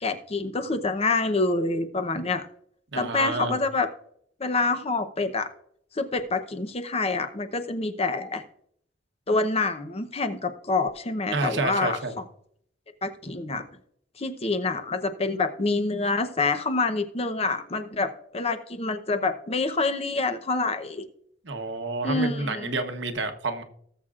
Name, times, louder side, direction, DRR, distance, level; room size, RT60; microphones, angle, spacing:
voice 1, 0.0-2.5 2.9-3.9 4.4-5.5 5.9-8.4 9.3-12.2 13.0-13.6 14.2-21.0 22.0-22.7, left 3 dB, 35° left, 8 dB, 0.8 m, -27 dB
voice 2, 2.9-3.6 11.3-12.1 21.4-23.6, right 3 dB, 70° right, 6 dB, 1.1 m, -29 dB
18.5 x 7.3 x 2.5 m, 0.67 s
head